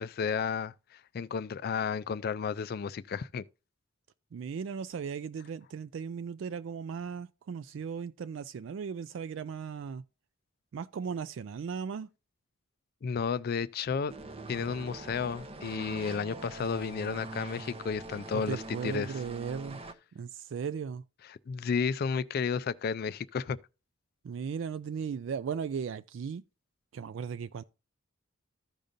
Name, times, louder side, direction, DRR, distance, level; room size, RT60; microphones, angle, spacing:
voice 1, 0.0-3.4 13.0-14.1 14.5-19.2 21.3-23.6, left 6 dB, 50° left, 0.3 m, -32 dB
voice 2, 4.3-10.0 10.7-12.1 18.3-19.8 20.1-21.0 24.2-26.4 26.9-27.6, right 6 dB, 70° right, 0.3 m, -37 dB
sound 1, 14.1-19.9, right 2 dB, 30° right, 0.6 m, -43 dB
14.5 x 5.1 x 2.6 m
head